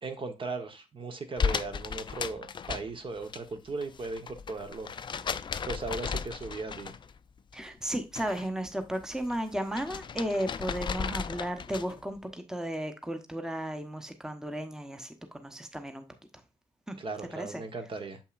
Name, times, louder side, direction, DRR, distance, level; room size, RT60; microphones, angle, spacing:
voice 1, 0.0-4.9 5.6-6.9 17.0-18.2, right 3 dB, 45° right, 1.1 m, -37 dB
sound 1, 1.4-3.4 3.7-7.2 7.5-8.5 8.8-12.0, left 6 dB, 40° left, 0.4 m, -35 dB
voice 2, 7.5-16.0 16.9-17.0 17.3-17.6, equal, 5° right, 0.9 m, -34 dB
7.0 x 5.4 x 2.5 m
supercardioid pair, 55°, 12 cm